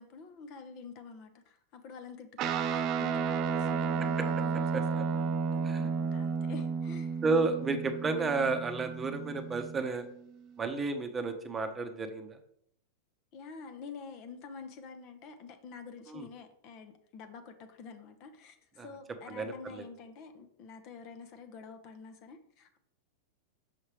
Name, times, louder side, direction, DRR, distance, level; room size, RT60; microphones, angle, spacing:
voice 1, 0.0-7.2 13.3-22.8, left 5 dB, 50° left, 0.8 m, -48 dB
Guitar, 2.4-10.0, right 5 dB, 45° right, 0.5 m, -32 dB
voice 2, 4.7-5.0 5.6-5.8 7.2-10.1 10.6-12.4 16.1-16.3 18.8-18.9 19.3-19.8, right 3 dB, 20° right, 0.8 m, -32 dB
5.8 x 5.5 x 3.3 m
hypercardioid pair, 105°, 0 cm